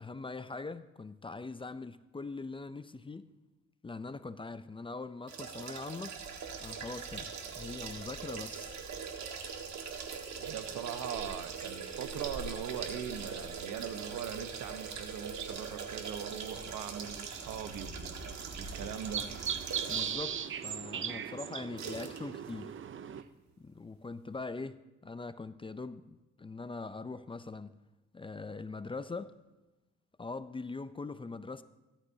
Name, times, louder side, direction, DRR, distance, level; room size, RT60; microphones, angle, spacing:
voice 1, 0.0-3.3 3.8-6.2 6.6-8.8 19.9-22.8 23.6-27.8 28.1-29.3 30.2-31.6, left 3 dB, 15° left, 0.5 m, -42 dB
sound 1, 5.3-20.2 20.7-20.8 21.8-22.2 22.5-22.6, right 6 dB, 65° right, 1.8 m, -42 dB
sound 2, 6.2-20.4, equal, 15° right, 1.8 m, -51 dB
voice 2, 10.4-17.9 18.6-19.3 23.1-23.3, right 9 dB, 85° right, 1.1 m, -41 dB
sound 3, 16.5-23.2, right 8 dB, 40° right, 0.6 m, -39 dB
16.0 x 13.0 x 2.8 m
cardioid pair, 90°, 30 cm